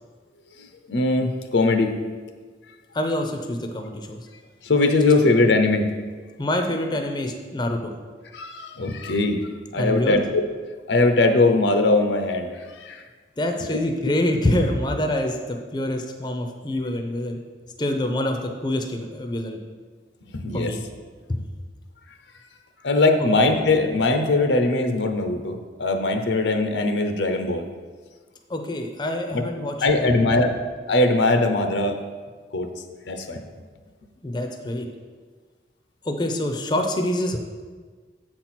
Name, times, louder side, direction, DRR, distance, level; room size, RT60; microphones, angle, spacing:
voice 1, 0.6-2.0 4.6-5.9 8.3-9.4 9.7-10.4 10.9-12.5 12.8-13.0 20.3-20.7 22.8-27.7 29.3-29.4 29.8-30.5 30.9-32.0 32.5-32.7 33.1-33.4, left 2 dB, 85° left, 6 dB, 0.7 m, -20 dB
voice 2, 2.9-4.2 6.4-7.9 9.8-10.2 13.4-17.4 17.8-19.6 20.5-20.8 21.3-21.4 28.5-30.5 34.2-34.9 36.0-37.4, left 1 dB, 25° left, 4 dB, 0.6 m, -26 dB
7.6 x 4.5 x 5.9 m, 1.5 s
head